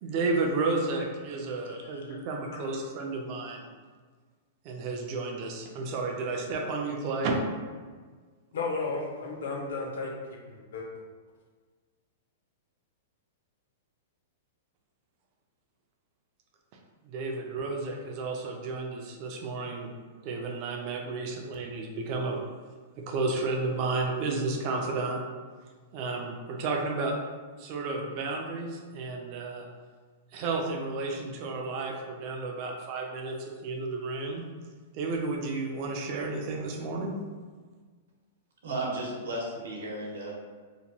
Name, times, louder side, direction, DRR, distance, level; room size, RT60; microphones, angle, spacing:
voice 1, 0.0-3.7 4.6-7.4 17.0-19.9 20.2-22.4 23.1-25.2 25.9-27.1 27.6-29.6 30.3-34.4 34.9-37.2, right 3 dB, 30° right, 1 dB, 0.4 m, -32 dB
voice 2, 1.7-2.2 2.5-2.6 8.5-10.1 10.5-10.9, left 3 dB, 70° left, 0 dB, 0.6 m, -34 dB
voice 3, 38.6-40.4, right 1 dB, 80° right, -3 dB, 0.8 m, -34 dB
2.8 x 2.2 x 2.7 m, 1.5 s
supercardioid pair, 180°, 0 cm